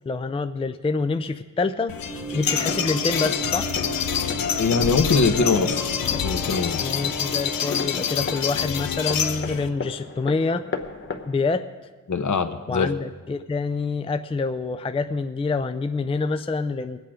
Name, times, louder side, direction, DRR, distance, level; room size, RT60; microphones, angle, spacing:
voice 1, 0.1-2.0 2.3-3.8 6.8-10.7 11.3-11.7 12.7-17.0, left 3 dB, 15° left, 9 dB, 0.4 m, -26 dB
sound 1, 1.9-9.7, left 8 dB, 80° left, 0.7 m, -27 dB
sound 2, 2.1-8.1, right 4 dB, 10° right, 0.8 m, -36 dB
sound 3, 2.5-11.3, left 4 dB, 35° left, 0.9 m, -36 dB
voice 2, 4.6-5.9 6.2-6.9 12.1-12.9, left 4 dB, 55° left, 7 dB, 1.1 m, -22 dB
21.0 x 8.3 x 5.0 m, 1.3 s
wide cardioid pair, 95°, 34 cm